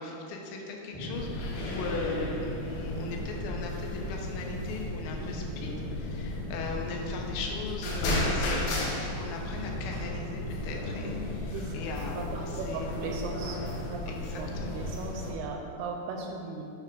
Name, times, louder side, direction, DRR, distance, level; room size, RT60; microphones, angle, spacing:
voice 1, 0.0-13.0 14.1-14.8, left 3 dB, 90° left, 1 dB, 2.9 m, -38 dB
sound 1, 0.9-14.9, equal, 55° left, 2.6 m, -41 dB
sound 2, 1.1-15.3, left 1 dB, 75° left, 2.1 m, -35 dB
voice 2, 12.2-13.6 13.9-14.0 14.4-16.6, right 4 dB, 85° right, 1 dB, 2.3 m, -37 dB
8.2 x 3.3 x 4.9 m, 2.6 s
omnidirectional pair, 5.1 m